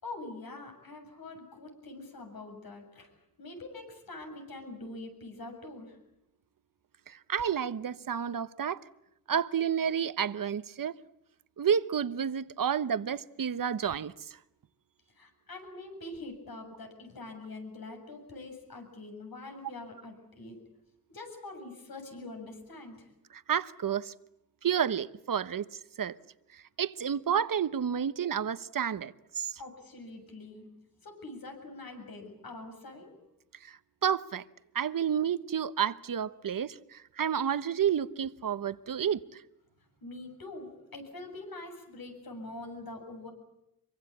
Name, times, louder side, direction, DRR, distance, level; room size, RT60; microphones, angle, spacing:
voice 1, 0.0-3.1 3.4-6.0 15.1-20.6 21.1-23.1 29.6-30.7 31.0-33.1 40.0-43.3, left 2 dB, 85° left, 7.3 m, -44 dB
voice 2, 7.1-8.8 9.3-11.0 11.6-14.4 23.3-24.1 24.6-25.7 26.0-26.2 26.5-29.6 33.6-34.4 34.7-39.4, right 8 dB, 70° right, 1.0 m, -30 dB
25.5 x 24.0 x 8.6 m
wide cardioid pair, 85°, 35 cm